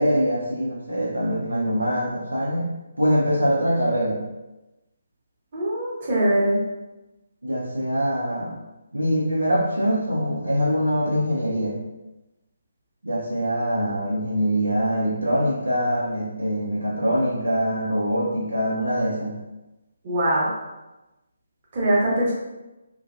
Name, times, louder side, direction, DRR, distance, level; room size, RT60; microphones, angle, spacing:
voice 1, 0.0-2.7 3.0-4.2 7.4-8.5 8.9-11.8 13.0-19.3, equal, 75° right, -5 dB, 0.7 m, -23 dB
voice 2, 5.5-6.6 20.0-20.5 21.7-22.3, right 1 dB, 35° right, -7 dB, 1.1 m, -22 dB
3.0 x 2.6 x 2.5 m, 1.0 s
figure-of-eight pair, 145°, 0 cm